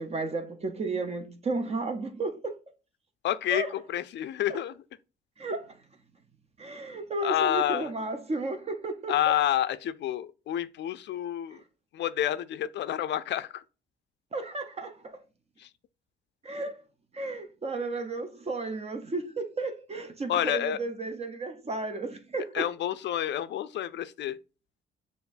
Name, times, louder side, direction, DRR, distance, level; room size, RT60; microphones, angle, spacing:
voice 1, 0.0-2.6 3.5-3.7 4.5-4.6 5.4-5.8 6.6-9.1 14.3-15.2 16.4-16.8 17.1-22.7, right 3 dB, 30° right, 0.6 m, -33 dB
voice 2, 3.2-4.8 7.2-7.9 9.1-11.6 11.9-13.6 15.6-15.7 20.3-20.8 22.5-24.4, left 11 dB, 65° left, 0.4 m, -29 dB
6.6 x 2.5 x 2.5 m
cardioid pair, 90°, 20 cm